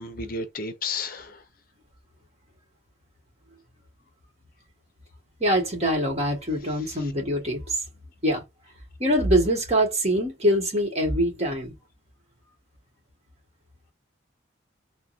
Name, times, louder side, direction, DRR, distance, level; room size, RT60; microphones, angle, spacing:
voice 1, 0.0-1.4 7.0-7.1, left 4 dB, 45° left, 0.6 m, -33 dB
voice 2, 5.4-7.8 8.2-8.4 9.0-11.7, equal, 35° right, 1.3 m, -24 dB
3.5 x 2.2 x 2.5 m
head